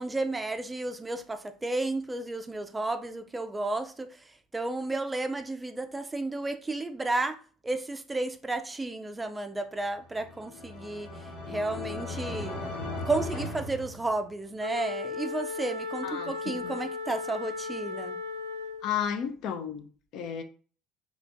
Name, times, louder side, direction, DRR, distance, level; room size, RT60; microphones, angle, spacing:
voice 1, 0.0-12.6 13.1-18.2, right 2 dB, 15° right, 0.4 m, -32 dB
sound 1, 10.0-14.6, left 2 dB, 85° left, 1.5 m, -37 dB
Wind instrument woodwind instrument, 14.6-19.0, left 4 dB, 80° right, 0.6 m, -36 dB
voice 2, 16.0-16.7 18.8-20.4, left 8 dB, 55° left, 0.5 m, -33 dB
3.1 x 2.5 x 3.4 m
hypercardioid pair, 65°, 0 cm